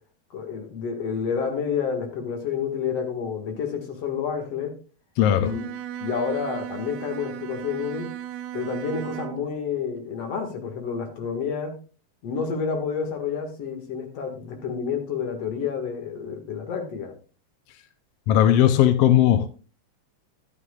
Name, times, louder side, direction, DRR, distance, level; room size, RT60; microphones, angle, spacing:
voice 1, 0.3-4.7 5.4-5.6 6.0-8.1 8.5-11.7 12.2-17.1, left 6 dB, 60° left, 4 dB, 2.8 m, -29 dB
voice 2, 5.2-5.5 18.3-19.5, left 11 dB, 75° left, 10 dB, 1.5 m, -18 dB
Bowed string instrument, 5.4-9.6, right 11 dB, 75° right, 1.8 m, -36 dB
12.5 x 11.0 x 2.4 m, 0.37 s
omnidirectional pair, 3.4 m